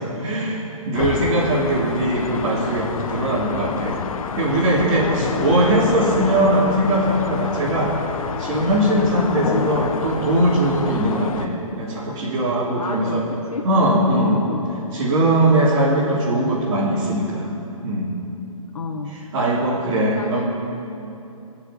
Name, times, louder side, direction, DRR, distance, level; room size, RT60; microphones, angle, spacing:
voice 1, 0.0-4.0 4.4-7.9 8.4-13.2 13.6-14.4 14.9-17.5 17.8-18.2 19.1-20.5, right 1 dB, 45° right, -8 dB, 3.2 m, -20 dB
sound 1, 0.9-11.5, left 6 dB, 70° left, 1.0 m, -28 dB
voice 2, 5.0-5.6 9.4-9.7 12.6-13.7 14.1-14.7 18.7-19.2 19.9-20.5, left 3 dB, 85° left, 1 dB, 1.4 m, -32 dB
20.0 x 7.0 x 8.4 m, 2.8 s
hypercardioid pair, 145°, 18 cm